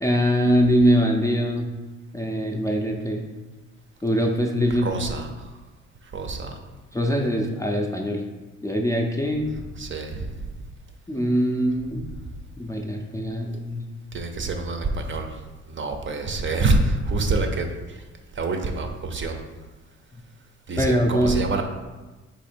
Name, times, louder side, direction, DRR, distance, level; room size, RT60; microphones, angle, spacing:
voice 1, 0.0-1.7 2.1-3.2 4.0-4.9 6.9-8.2 8.6-9.5 11.1-12.1 12.6-13.8 20.8-21.4, equal, 10° left, -1 dB, 0.4 m, -22 dB
voice 2, 4.7-5.5 6.1-6.6 9.8-10.4 14.1-15.3 15.7-18.0 18.3-19.4 20.7-21.6, right 3 dB, 40° right, 4 dB, 0.6 m, -26 dB
4.2 x 2.8 x 4.3 m, 1.2 s
cardioid pair, 90°, 30 cm